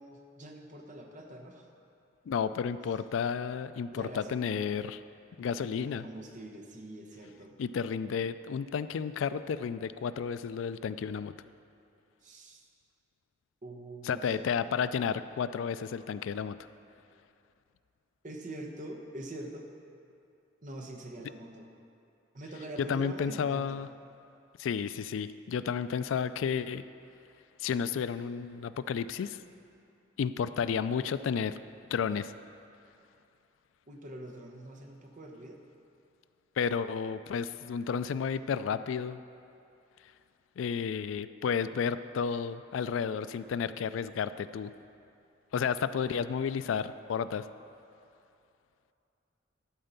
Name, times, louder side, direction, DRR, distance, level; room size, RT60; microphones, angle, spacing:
voice 1, 0.0-1.7 3.9-4.7 5.4-7.6 12.2-12.7 13.6-14.4 18.2-19.7 20.6-21.7 22.3-23.8 33.9-35.6, right 1 dB, 40° right, 2 dB, 1.0 m, -45 dB
voice 2, 2.3-5.0 5.4-6.1 7.6-11.3 14.0-16.6 22.8-23.9 24.6-26.8 27.6-29.4 30.2-31.6 31.9-32.3 36.6-39.2 40.6-44.7 45.5-47.5, left 6 dB, 90° left, 13 dB, 0.3 m, -32 dB
12.5 x 4.4 x 6.7 m, 2.7 s
head